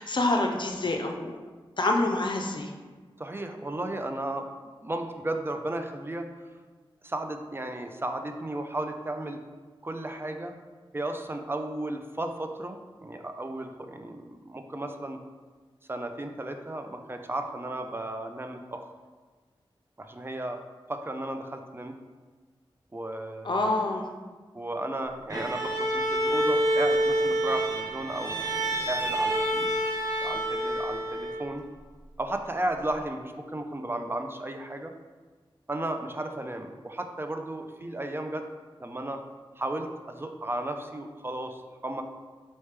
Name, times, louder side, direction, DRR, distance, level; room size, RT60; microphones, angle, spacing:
voice 1, 0.0-1.4 1.8-2.7 23.4-24.0, left 2 dB, 55° left, 2 dB, 0.6 m, -27 dB
voice 2, 3.2-4.5 4.8-6.3 7.0-9.4 9.8-10.5 10.9-15.2 15.9-18.8 20.0-20.6 20.9-21.9 22.9-23.7 24.5-28.4 28.9-29.7 30.2-31.6 32.2-34.9 35.7-38.4 38.8-39.2 39.6-42.0, right 1 dB, 25° right, 6 dB, 0.4 m, -34 dB
Bowed string instrument, 25.3-31.6, right 1 dB, 40° right, 1.0 m, -27 dB
4.2 x 3.2 x 3.3 m, 1.4 s
cardioid pair, 40°, 10 cm